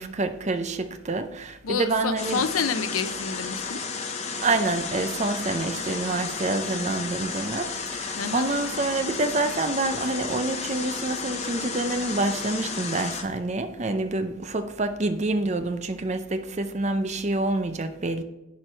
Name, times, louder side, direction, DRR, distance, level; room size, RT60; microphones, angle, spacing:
voice 1, 0.0-2.4 4.4-18.2, right 2 dB, 30° right, 0.6 m, -27 dB
voice 2, 1.6-3.8 8.2-8.5, left 5 dB, 85° left, 0.6 m, -28 dB
sound 1, 2.2-13.2, left 4 dB, 30° left, 0.8 m, -33 dB
10.5 x 4.8 x 4.4 m
head